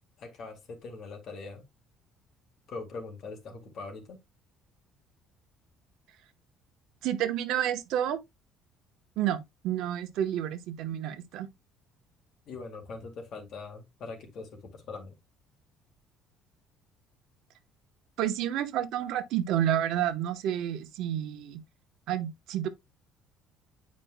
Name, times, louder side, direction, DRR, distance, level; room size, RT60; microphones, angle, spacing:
voice 1, 0.2-1.6 2.7-4.2 12.5-15.2, left 4 dB, 45° left, 2.2 m, -42 dB
voice 2, 7.0-8.2 9.2-11.5 18.2-21.6 22.1-22.7, right 11 dB, 70° right, 1.0 m, -30 dB
9.7 x 5.2 x 2.2 m
cardioid pair, 150°, 0 cm